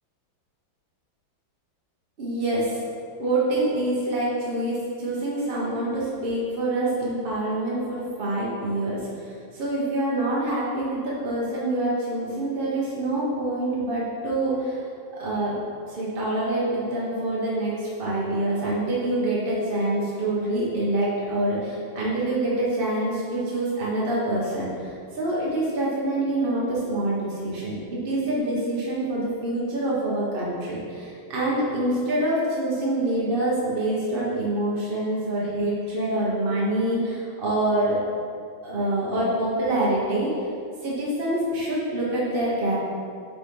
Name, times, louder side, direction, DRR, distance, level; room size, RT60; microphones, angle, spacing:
voice 1, 2.2-2.8 3.2-14.8 15.1-15.6 15.9-38.0 38.6-40.3 40.8-42.7, right 1 dB, 40° right, -7 dB, 0.8 m, -26 dB
7.6 x 4.1 x 3.7 m, 2.4 s
omnidirectional pair, 2.3 m